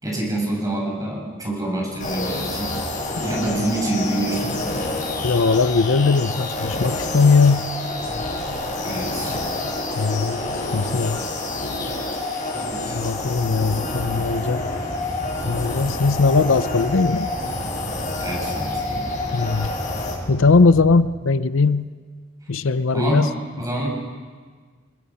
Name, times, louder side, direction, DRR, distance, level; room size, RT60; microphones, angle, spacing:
voice 1, 0.0-2.9 3.2-4.6 8.8-9.3 12.5-13.0 18.2-19.1 22.9-23.9, right 1 dB, 20° right, -1 dB, 5.9 m, -26 dB
sound 1, 2.0-20.2, left 2 dB, 40° left, 5.1 m, -28 dB
voice 2, 5.2-7.7 10.0-11.2 12.9-14.7 15.4-17.3 19.3-19.7 20.3-21.9 22.5-23.3, left 4 dB, 80° left, 14 dB, 0.7 m, -19 dB
sound 2, 13.4-21.0, equal, 5° left, 6.8 m, -34 dB
29.0 x 20.0 x 5.7 m, 1.6 s
head